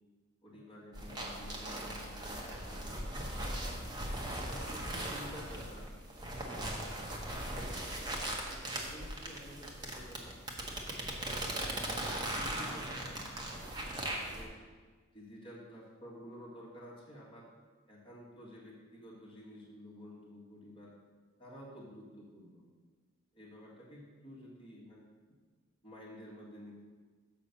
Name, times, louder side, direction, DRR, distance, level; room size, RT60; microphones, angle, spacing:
voice 1, 0.4-3.9 4.6-5.9 6.1-7.7 8.4-11.4 11.9-13.4 13.8-14.5 15.1-17.5 17.9-20.9 21.4-22.7 23.3-25.0 25.8-26.9, equal, 25° left, -4 dB, 1.8 m, -52 dB
sound 1, 0.9-14.4, right 1 dB, 20° right, 1.1 m, -39 dB
7.0 x 5.5 x 6.6 m, 1.4 s
head